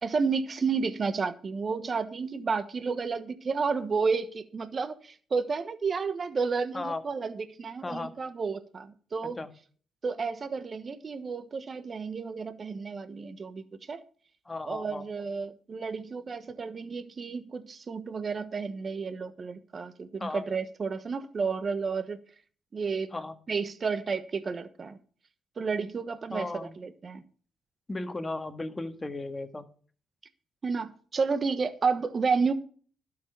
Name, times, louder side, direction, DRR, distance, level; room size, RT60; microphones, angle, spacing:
voice 1, 0.0-9.4 10.0-14.0 14.7-22.2 22.7-23.1 23.5-25.0 25.6-27.2 30.6-32.5, right 5 dB, 40° right, 1.2 m, -31 dB
voice 2, 14.4-15.0 20.2-20.4 23.1-23.3 26.3-26.8 27.9-29.6, left 2 dB, 20° left, 1.8 m, -35 dB
12.0 x 7.1 x 6.8 m
cardioid pair, 90°, 0 cm